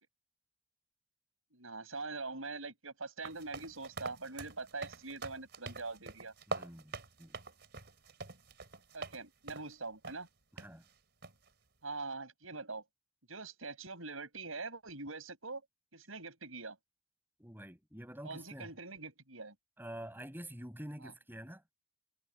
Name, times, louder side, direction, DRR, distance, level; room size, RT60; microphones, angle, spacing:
voice 1, 1.5-6.3 8.9-10.3 11.8-12.8 13.3-15.6 15.9-16.8 18.2-19.5 21.0-21.1, right 3 dB, 85° right, 6.3 m, -43 dB
sound 1, 3.2-9.2 9.5-9.7 10.0-10.2 10.6-10.7 11.2-11.5, right 3 dB, 55° right, 4.3 m, -45 dB
voice 2, 6.5-7.4 10.5-10.8 17.4-18.7 19.8-21.6, equal, 10° right, 7.9 m, -47 dB
head